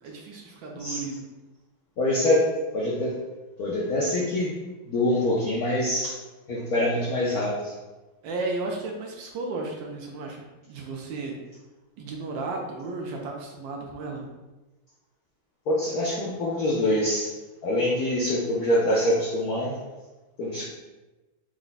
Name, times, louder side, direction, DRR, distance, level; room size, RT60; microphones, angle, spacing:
voice 1, 0.0-1.2 8.2-11.4 12.0-14.2, right 3 dB, 75° right, 0 dB, 1.2 m, -34 dB
voice 2, 2.0-3.2 3.6-4.5 4.9-6.2 6.5-7.7 15.7-17.3 17.6-19.8 20.4-20.6, left 1 dB, 75° left, -4 dB, 0.8 m, -25 dB
4.6 x 2.1 x 3.9 m, 1.1 s
omnidirectional pair, 2.3 m